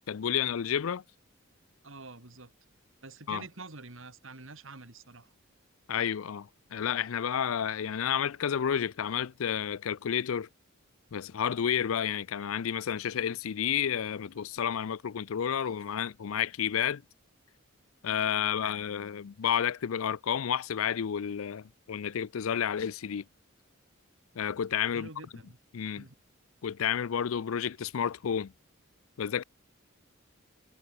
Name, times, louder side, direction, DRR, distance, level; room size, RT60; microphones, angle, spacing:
voice 1, 0.1-1.0 3.3-3.4 5.9-10.5 11.1-17.0 18.0-23.2 24.4-25.1 25.7-26.0 26.6-28.5 29.2-29.4, left 8 dB, 80° left, 0.5 m, -31 dB
voice 2, 1.8-2.5 3.0-5.3 24.9-25.6 25.9-26.1, right 3 dB, 65° right, 2.8 m, -47 dB
head